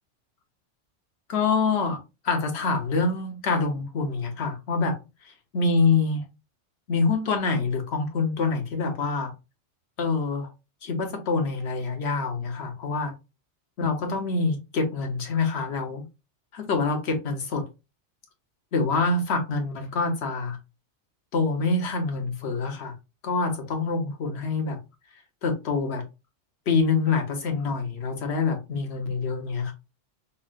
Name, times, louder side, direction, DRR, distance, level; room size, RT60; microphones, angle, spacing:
voice 1, 1.3-2.0 2.2-6.2 6.9-9.3 10.0-10.5 10.8-13.1 13.8-16.0 16.5-17.6 18.7-20.6 21.3-22.9 23.2-24.8 25.4-26.0 26.7-29.7, left 4 dB, 60° left, 1.1 m, -26 dB
5.4 x 2.1 x 2.4 m
omnidirectional pair, 1.3 m